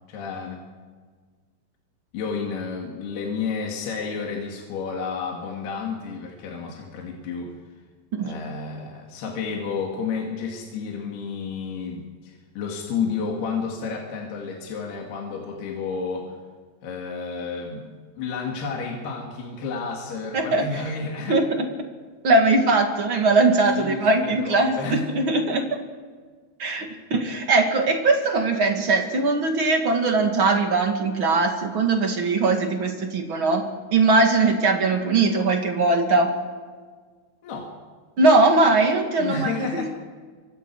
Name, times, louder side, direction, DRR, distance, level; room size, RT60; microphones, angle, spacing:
voice 1, 0.1-0.6 2.1-7.5 8.2-16.4 16.8-21.4 23.7-25.0 37.4-37.7 39.2-39.9, left 5 dB, 65° left, -1 dB, 4.0 m, -31 dB
voice 2, 20.3-20.6 21.3-21.5 22.2-25.7 26.6-33.6 33.9-36.3 38.2-39.9, right 3 dB, 40° right, 3 dB, 1.9 m, -20 dB
26.0 x 24.5 x 4.8 m, 1.5 s
omnidirectional pair, 5.0 m